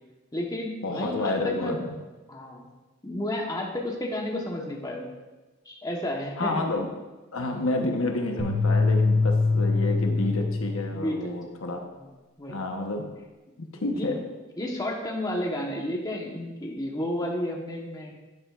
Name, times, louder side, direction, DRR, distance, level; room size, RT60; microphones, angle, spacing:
voice 1, 0.3-1.8 2.3-2.7 3.0-5.1 5.6-6.7 10.9-11.3 12.0-12.1 12.4-12.6 13.9-14.2 14.6-18.1, left 1 dB, 15° left, -1 dB, 1.1 m, -31 dB
voice 2, 0.8-2.0 6.4-6.9 7.3-11.8 12.5-13.0 13.6-14.2, left 2 dB, 70° left, 3 dB, 1.0 m, -29 dB
sound 1, 8.4-10.9, left 3 dB, 15° right, 2.9 m, -23 dB
10.5 x 9.8 x 2.5 m, 1.2 s
head